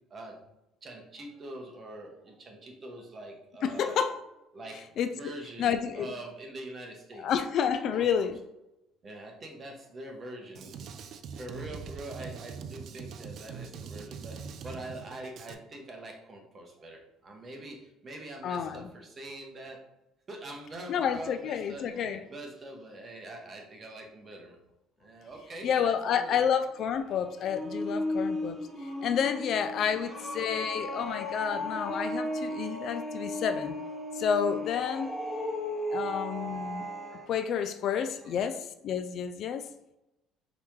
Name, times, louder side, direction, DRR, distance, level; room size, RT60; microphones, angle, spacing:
voice 1, 0.8-4.0 4.5-4.8 5.1-7.3 7.9-8.3 9.0-10.8 11.4-19.8 20.3-24.6 25.0-26.3 37.1-37.5 37.9-38.5, right 1 dB, 30° right, 1 dB, 1.0 m, -44 dB
voice 2, 3.6-4.2 5.0-5.1 5.6-6.1 7.2-8.4 18.4-18.9 20.9-22.2 25.6-28.6 29.0-33.8 34.1-35.1 35.9-36.9 37.3-38.6 38.8-39.6, left 7 dB, 55° left, 9 dB, 0.3 m, -29 dB
Drum kit, 10.5-15.5, right 6 dB, 55° right, 0.4 m, -42 dB
sound 1, 26.7-37.3, left 1 dB, 5° right, 0.8 m, -35 dB
4.0 x 3.0 x 3.6 m, 0.90 s
cardioid pair, 120°, 0 cm